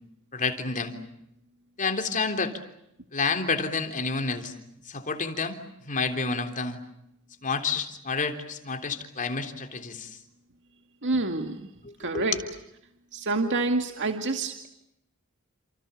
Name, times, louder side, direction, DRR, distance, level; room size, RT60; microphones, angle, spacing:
voice 1, 0.3-0.9 1.8-2.5 3.1-4.5 4.9-5.6 5.8-6.8 7.4-10.2 11.8-12.3, left 4 dB, 35° left, 6 dB, 3.5 m, -29 dB
voice 2, 11.0-11.7 12.0-12.4 13.1-14.7, right 3 dB, 55° right, 6 dB, 2.2 m, -27 dB
30.0 x 27.5 x 7.0 m, 0.81 s
head